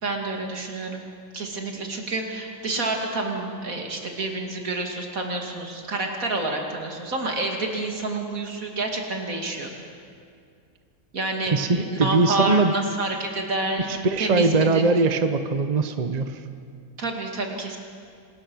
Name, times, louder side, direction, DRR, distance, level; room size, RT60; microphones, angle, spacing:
voice 1, 0.0-1.0 1.3-9.7 11.1-13.9 14.2-14.8 17.0-17.8, right 2 dB, 75° right, 2 dB, 3.0 m, -28 dB
voice 2, 11.5-12.7 13.9-16.4, right 3 dB, 35° right, 8 dB, 1.0 m, -21 dB
26.0 x 20.0 x 6.3 m, 2.3 s
omnidirectional pair, 1.5 m